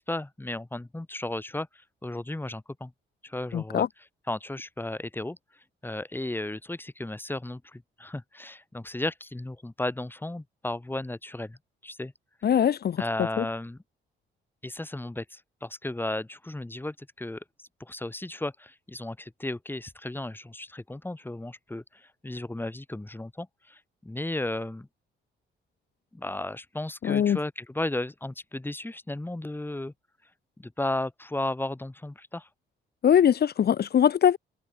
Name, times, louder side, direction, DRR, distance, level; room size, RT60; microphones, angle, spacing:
voice 1, 0.0-2.9 3.2-3.9 4.3-5.4 5.8-11.6 11.8-12.1 13.0-13.8 14.6-17.4 17.8-24.9 26.1-29.9 30.6-32.5, left 1 dB, 10° left, 3.6 m, -34 dB
voice 2, 3.5-3.9 12.4-13.0 13.4-13.5 27.0-27.4 33.0-34.4, left 9 dB, 55° left, 1.3 m, -22 dB
cardioid pair, 90°, 20 cm